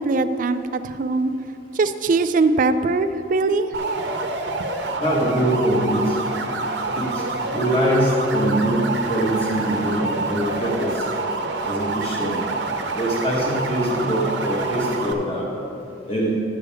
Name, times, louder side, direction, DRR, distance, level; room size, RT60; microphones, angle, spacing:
voice 1, 0.0-1.3 1.8-3.7 4.6-4.7, right 3 dB, 45° right, 11 dB, 0.4 m, -21 dB
sound 1, 3.7-15.1, right 3 dB, 75° right, 0.8 m, -27 dB
voice 2, 5.0-6.1 6.9-7.2 7.5-11.0 11.6-12.4 13.0-15.5 16.1-16.3, equal, 30° left, -4 dB, 1.5 m, -23 dB
11.5 x 8.1 x 3.5 m, 2.6 s
head